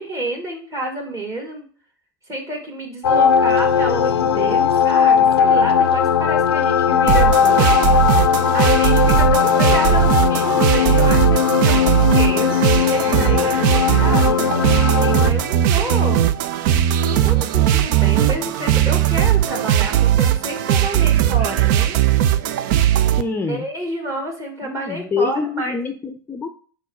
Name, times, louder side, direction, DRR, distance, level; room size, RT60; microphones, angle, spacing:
voice 1, 0.0-1.6 2.3-7.8 8.5-11.8 12.1-14.4 14.7-16.3 17.0-22.0 23.2-25.8, right 1 dB, 25° right, 0 dB, 1.9 m, -29 dB
sound 1, 3.0-15.3, left 7 dB, 80° left, 0.4 m, -17 dB
sound 2, 7.1-23.2, right 10 dB, 55° right, 0.6 m, -18 dB
voice 2, 13.1-13.5 23.2-23.7 24.6-26.5, left 4 dB, 15° left, 6 dB, 0.6 m, -26 dB
4.6 x 4.3 x 5.8 m, 0.43 s
hypercardioid pair, 100°, 13 cm